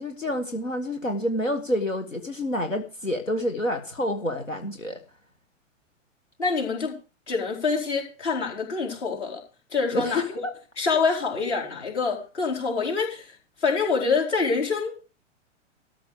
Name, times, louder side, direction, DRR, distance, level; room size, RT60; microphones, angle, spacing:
voice 1, 0.0-5.0 9.9-10.5, left 1 dB, 85° left, 1.4 m, -28 dB
voice 2, 6.4-6.9 7.3-9.4 9.7-10.5 10.8-13.4 13.6-14.9, left 4 dB, 60° left, 4.4 m, -26 dB
13.5 x 6.1 x 6.5 m
figure-of-eight pair, 100°, 38 cm